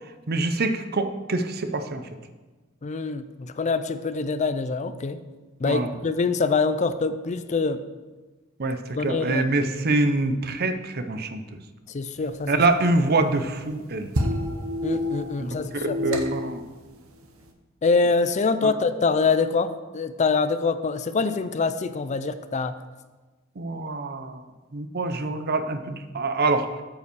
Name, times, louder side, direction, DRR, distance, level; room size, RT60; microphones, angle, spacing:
voice 1, 0.3-2.0 5.7-5.9 8.6-11.4 12.5-14.1 15.4-15.5 15.7-16.6 18.6-18.7 23.6-24.4 24.7-26.7, right 2 dB, 45° right, 9 dB, 0.7 m, -25 dB
voice 2, 2.8-5.2 5.6-7.8 9.0-9.5 11.9-12.6 14.8-16.3 17.8-22.7, left 4 dB, 35° left, 12 dB, 0.4 m, -25 dB
sound 1, 12.2-17.5, left 1 dB, 70° right, 1.0 m, -30 dB
9.0 x 5.4 x 6.9 m, 1.2 s
head